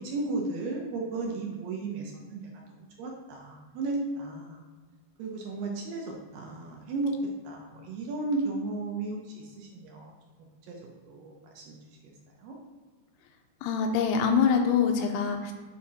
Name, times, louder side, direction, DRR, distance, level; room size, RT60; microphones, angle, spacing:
voice 1, 0.0-2.4 3.0-4.6 5.2-6.1 6.3-7.1 7.4-10.1 10.7-10.8 11.1-11.8 12.4-12.6, right 3 dB, 75° right, -1 dB, 2.2 m, -34 dB
voice 2, 13.6-15.5, left 6 dB, 90° left, 4 dB, 2.8 m, -24 dB
7.4 x 4.3 x 4.2 m, 1.4 s
omnidirectional pair, 4.6 m